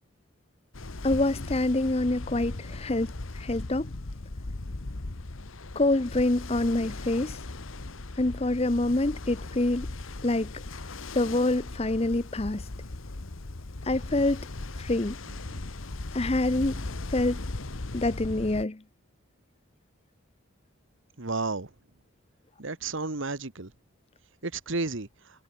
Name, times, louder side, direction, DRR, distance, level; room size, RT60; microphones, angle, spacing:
Ocean, 0.7-18.6, left 2 dB, 70° left, 1.3 m, -38 dB
voice 1, 1.0-3.9 5.8-7.4 8.2-9.9 10.2-10.5 11.1-12.6 13.8-14.5 14.8-15.2 16.1-16.8 17.1-17.4 17.9-18.8, left 2 dB, 30° left, 0.7 m, -26 dB
voice 2, 21.2-21.7 22.6-23.7 24.4-25.1, right 3 dB, 65° right, 1.6 m, -32 dB
head